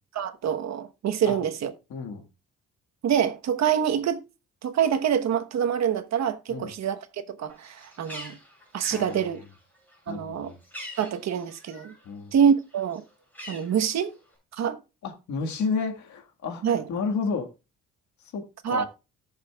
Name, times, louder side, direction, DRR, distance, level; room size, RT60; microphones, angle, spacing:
voice 1, 0.1-1.7 3.0-4.2 4.6-8.4 8.7-9.4 10.1-10.5 11.0-11.9 12.3-13.0 13.5-14.1 14.6-14.8 16.6-16.8 18.6-18.8, right 8 dB, 60° right, 1.1 m, -25 dB
voice 2, 1.9-2.3 6.5-6.7 8.9-9.3 10.1-10.6 12.1-12.3 15.0-17.5 18.3-18.9, left 5 dB, 70° left, 1.8 m, -31 dB
Bird, 7.5-12.1 12.4-14.3, left 1 dB, 5° left, 7.0 m, -45 dB
18.0 x 6.5 x 2.3 m
cardioid pair, 90°, 30 cm